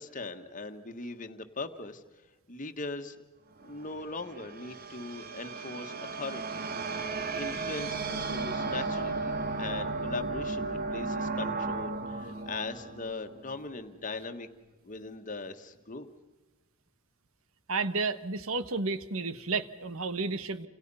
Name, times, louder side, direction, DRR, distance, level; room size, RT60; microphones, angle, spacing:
voice 1, 0.0-2.0 2.5-3.2 3.6-6.6 7.3-14.5 14.8-16.1, left 3 dB, 35° left, 7 dB, 1.5 m, -40 dB
sound 1, 3.6-13.9, right 3 dB, 45° right, 1.5 m, -35 dB
voice 2, 17.7-20.7, right 3 dB, 70° right, 13 dB, 1.3 m, -32 dB
29.5 x 27.5 x 5.6 m, 1.1 s
head